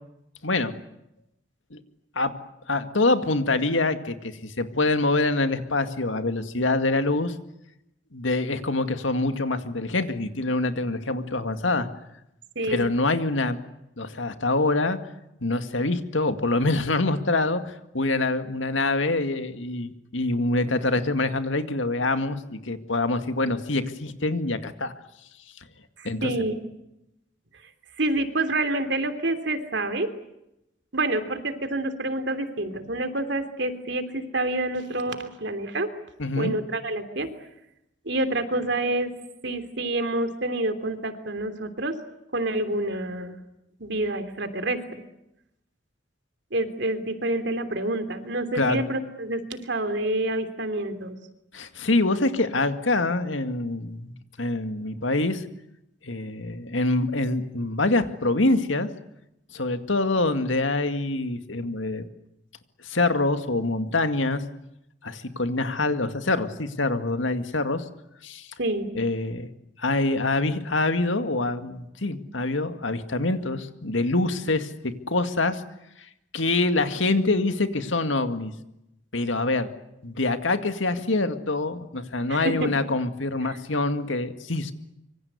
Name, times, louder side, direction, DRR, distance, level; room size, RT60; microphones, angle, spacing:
voice 1, 2.7-7.3 8.1-11.9 12.7-13.6 14.0-15.0 15.4-24.9 26.0-26.3 36.2-36.5 48.5-48.8 51.5-55.4 56.0-58.9 59.5-62.1 62.8-64.4 65.0-67.8 68.2-68.5 68.9-69.5 69.8-75.6 76.3-78.5 79.1-79.7 80.0-84.7, left 2 dB, 90° left, 9 dB, 2.1 m, -25 dB
voice 2, 12.5-12.9 26.0-26.5 28.0-30.1 30.9-35.9 36.4-37.3 38.0-39.1 39.4-41.9 42.3-43.3 43.8-45.0 46.5-51.1 68.6-68.9 82.3-82.7 83.4-83.5, right 2 dB, 65° right, 9 dB, 3.2 m, -28 dB
26.0 x 24.5 x 8.2 m, 0.85 s
head